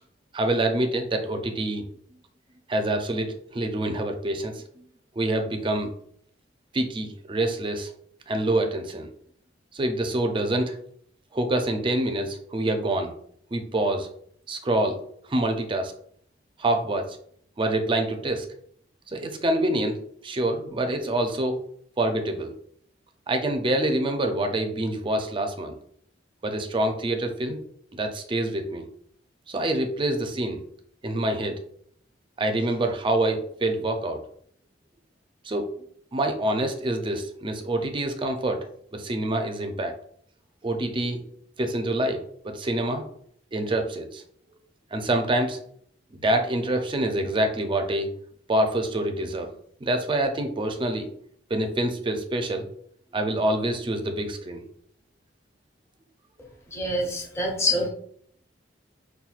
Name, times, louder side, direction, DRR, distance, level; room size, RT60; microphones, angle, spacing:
voice 1, 0.3-1.8 2.7-4.6 5.2-5.9 6.7-7.9 8.3-9.1 9.7-10.8 11.3-13.1 13.5-14.1 14.5-15.0 15.3-15.9 16.6-17.1 17.6-18.5 19.1-21.6 22.0-22.5 23.3-25.7 26.4-27.6 27.9-28.9 29.5-30.6 31.0-31.6 32.4-34.2 35.4-35.7 36.1-38.7 38.9-39.9 40.6-41.2 41.6-43.0 43.5-44.2 44.9-45.6 46.1-48.1 48.5-49.5 49.8-51.1 51.5-52.7 53.1-54.6, right 1 dB, 30° right, 5 dB, 0.4 m, -26 dB
voice 2, 56.7-57.9, left 1 dB, 15° left, -1 dB, 0.7 m, -26 dB
5.6 x 2.2 x 2.4 m, 0.64 s
head